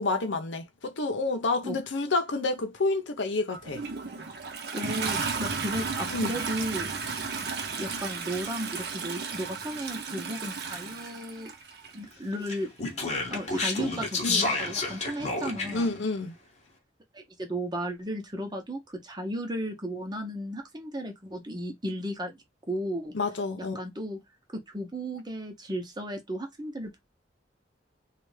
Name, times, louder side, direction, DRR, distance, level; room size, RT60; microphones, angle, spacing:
voice 1, 0.0-3.8 6.1-6.4 14.2-14.5 15.7-16.3 23.1-23.8, left 3 dB, 80° left, 0.7 m, -29 dB
Toilet flush, 3.5-12.0 13.0-13.1, right 4 dB, 60° right, 0.8 m, -34 dB
voice 2, 4.7-6.9 7.8-11.5 11.9-12.7 13.3-15.9 17.1-22.3 22.7-23.1 23.7-24.2 24.5-27.0, right 1 dB, 20° right, 0.9 m, -34 dB
Speech, 12.5-15.9, left 3 dB, 35° left, 0.9 m, -30 dB
3.3 x 2.4 x 3.2 m
head